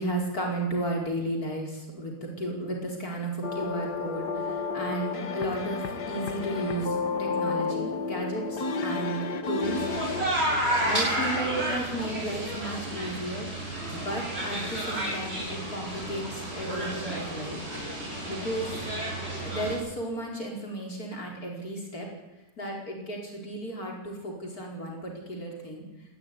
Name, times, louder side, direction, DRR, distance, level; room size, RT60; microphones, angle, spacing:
voice 1, 0.0-9.9 10.7-13.5 13.9-17.6 18.3-18.7 19.4-22.1 22.6-25.8, right 1 dB, 65° left, 0 dB, 5.2 m, -34 dB
sound 1, 3.4-10.3, left 4 dB, 80° left, 2.2 m, -31 dB
sound 2, 9.6-19.8, right 1 dB, 40° right, 8.2 m, -31 dB
20.0 x 15.0 x 9.7 m, 1.1 s
omnidirectional pair, 1.7 m